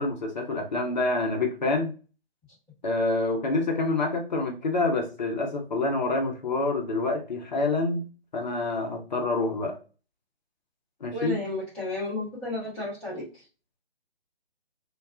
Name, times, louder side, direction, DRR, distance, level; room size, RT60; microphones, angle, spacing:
voice 1, 0.0-1.9 2.8-8.1 8.3-9.7 11.0-11.4, left 2 dB, 45° left, 3 dB, 0.7 m, -27 dB
voice 2, 11.1-13.4, left 2 dB, 5° left, -12 dB, 0.6 m, -32 dB
2.3 x 2.1 x 3.4 m, 0.34 s
figure-of-eight pair, 145°, 31 cm